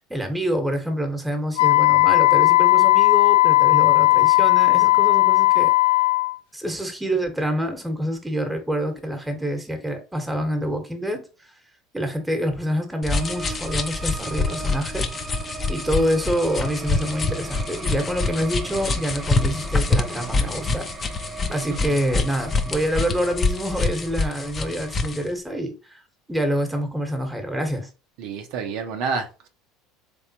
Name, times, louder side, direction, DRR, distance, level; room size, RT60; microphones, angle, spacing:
voice 1, 0.0-5.7 6.5-11.2 11.9-15.0 15.7-20.9 21.5-26.0 26.3-27.9, equal, 5° right, 1.2 m, -26 dB
Wind instrument woodwind instrument, 1.6-6.4, left 20 dB, 80° left, 0.3 m, -16 dB
sound 1, 13.0-25.2, left 3 dB, 35° left, 0.7 m, -26 dB
sound 2, 13.1-25.2, right 3 dB, 30° right, 0.7 m, -38 dB
voice 2, 28.2-29.5, right 5 dB, 70° right, 0.8 m, -29 dB
3.7 x 3.5 x 2.8 m
hypercardioid pair, 85°, 0 cm